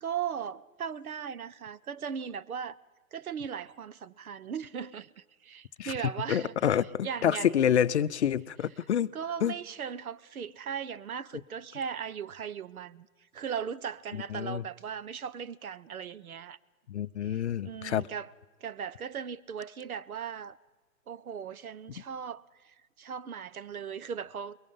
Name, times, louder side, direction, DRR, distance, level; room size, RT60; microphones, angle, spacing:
voice 1, 0.0-2.8 3.1-6.5 7.0-7.7 9.1-13.1 13.3-16.6 17.2-18.3 18.6-20.6 21.1-24.6, right 7 dB, 90° right, 0.9 m, -38 dB
voice 2, 6.3-9.1 9.4-9.5 14.3-14.6 16.9-18.0, left 9 dB, 55° left, 0.6 m, -27 dB
23.5 x 22.0 x 5.5 m
hypercardioid pair, 155°, 42 cm